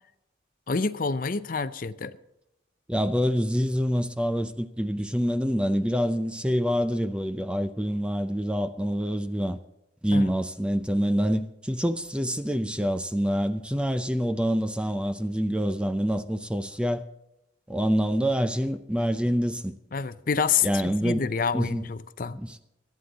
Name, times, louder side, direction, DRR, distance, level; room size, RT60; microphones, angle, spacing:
voice 1, 0.7-2.1 10.1-10.3 19.9-22.4, left 5 dB, 45° left, 0.6 m, -28 dB
voice 2, 2.9-9.6 10.0-17.0 17.7-19.7 20.6-21.2 21.5-21.8 22.3-22.6, equal, 5° right, 0.5 m, -26 dB
25.0 x 9.6 x 4.1 m
head